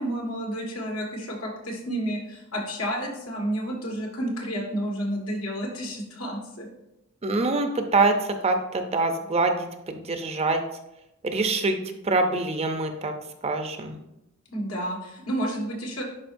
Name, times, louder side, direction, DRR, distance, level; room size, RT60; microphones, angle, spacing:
voice 1, 0.0-6.7 14.5-16.0, right 1 dB, 80° left, -1 dB, 1.8 m, -30 dB
voice 2, 7.2-10.6 11.2-11.8 12.0-13.1 13.4-14.0, right 3 dB, 30° right, 6 dB, 0.6 m, -25 dB
10.5 x 4.3 x 2.6 m, 0.87 s
head